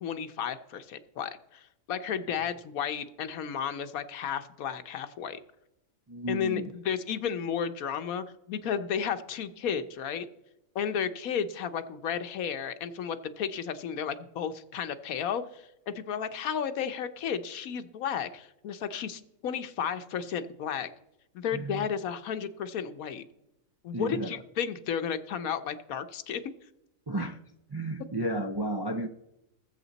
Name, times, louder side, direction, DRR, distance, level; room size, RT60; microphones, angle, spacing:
voice 1, 0.0-5.4 6.3-10.3 10.7-20.9 21.3-23.2 23.8-26.4, left 7 dB, 90° left, 10 dB, 1.3 m, -33 dB
voice 2, 6.1-6.7 21.5-21.9 23.9-24.4 27.1-27.4 27.7-29.1, right 1 dB, 35° right, 5 dB, 0.3 m, -33 dB
20.0 x 7.6 x 4.0 m, 0.87 s
omnidirectional pair, 1.4 m